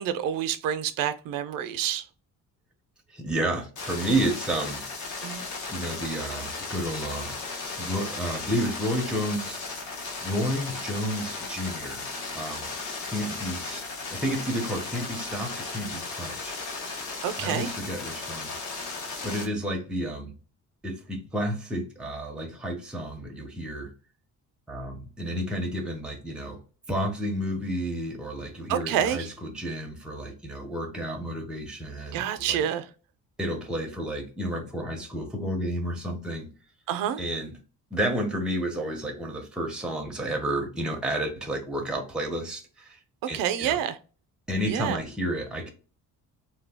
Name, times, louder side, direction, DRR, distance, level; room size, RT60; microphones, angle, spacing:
voice 1, 0.0-2.1 5.2-5.4 17.2-17.7 28.7-29.3 32.1-32.9 36.9-37.2 43.3-44.0 44.6-45.0, right 10 dB, 90° right, 0.5 m, -28 dB
voice 2, 3.1-7.4 7.8-9.6 10.2-12.7 13.1-13.9 14.1-16.6 17.4-18.5 19.2-20.3 20.8-23.9 24.7-26.6 26.9-29.2 29.5-32.6 33.4-36.5 37.2-37.5 37.9-43.0 43.3-43.8 44.5-45.7, right 1 dB, 5° right, 0.5 m, -31 dB
sound 1, 3.8-19.5, left 3 dB, 65° left, 0.9 m, -36 dB
2.7 x 2.2 x 3.3 m
cardioid pair, 170°, 32 cm